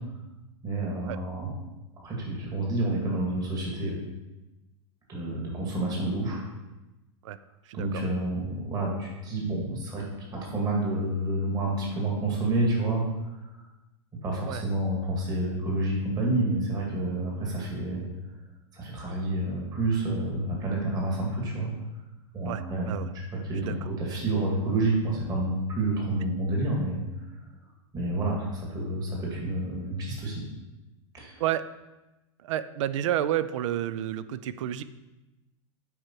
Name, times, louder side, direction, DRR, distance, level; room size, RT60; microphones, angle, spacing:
voice 1, 0.6-1.5 2.0-3.9 5.1-6.4 7.7-10.0 10.3-13.0 13.4-13.6 14.2-18.0 18.7-21.7 22.3-23.0 23.5-27.0 27.9-30.4 31.1-31.4, right 2 dB, 25° right, -3 dB, 2.1 m, -29 dB
voice 2, 7.7-8.1 14.5-14.7 22.4-23.1 23.6-23.7 31.4-31.6 32.4-34.8, right 11 dB, 70° right, 14 dB, 0.5 m, -30 dB
7.7 x 4.9 x 4.5 m, 1.0 s
supercardioid pair, 145°, 16 cm